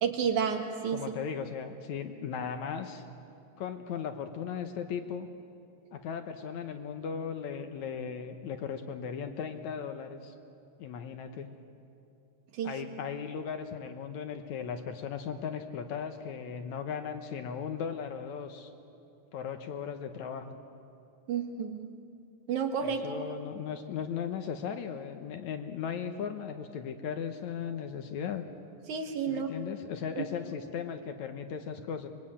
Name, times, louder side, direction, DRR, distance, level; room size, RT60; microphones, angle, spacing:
voice 1, 0.0-1.0 12.5-12.8 21.3-21.9 22.5-23.2 28.9-29.5 30.2-30.3, right 7 dB, 65° right, 4 dB, 2.9 m, -31 dB
voice 2, 0.9-3.0 3.6-5.3 5.9-10.3 10.8-11.5 12.6-18.7 19.3-20.6 22.8-28.4 29.3-32.1, left 7 dB, 70° left, 7 dB, 2.1 m, -37 dB
24.0 x 22.0 x 8.7 m, 2.6 s
omnidirectional pair, 3.9 m